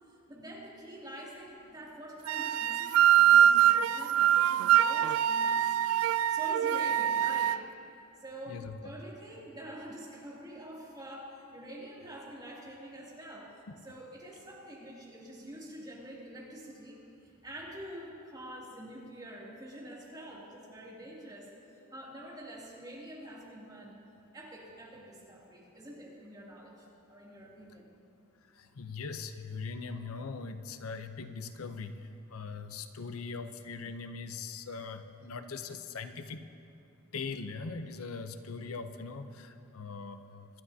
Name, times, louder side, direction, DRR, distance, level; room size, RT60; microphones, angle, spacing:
voice 1, 0.1-5.8 6.3-7.6 7.9-13.5 13.8-23.9 24.3-27.9, right 1 dB, 20° right, -5 dB, 2.6 m, -46 dB
sound 1, 2.3-7.6, right 11 dB, 80° right, 0.3 m, -24 dB
voice 2, 8.5-8.9 28.6-31.9 32.3-36.4 37.1-40.6, left 4 dB, 90° left, 9 dB, 0.6 m, -41 dB
25.0 x 11.5 x 2.8 m, 2.6 s
head